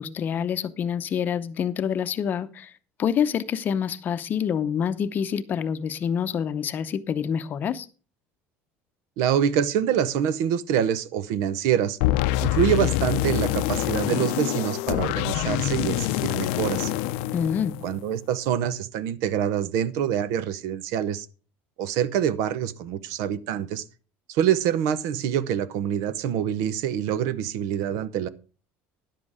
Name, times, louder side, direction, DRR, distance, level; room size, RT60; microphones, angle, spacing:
voice 1, 0.0-2.7 3.0-7.9 17.3-17.8, left 8 dB, 35° left, 0.7 m, -27 dB
voice 2, 9.2-12.0 12.4-16.9 17.8-21.3 21.8-23.8 24.3-28.3, right 9 dB, 70° right, 0.8 m, -25 dB
sound 1, 12.0-18.2, left 15 dB, 80° left, 0.5 m, -26 dB
11.0 x 7.6 x 4.8 m
cardioid pair, 145°, 5 cm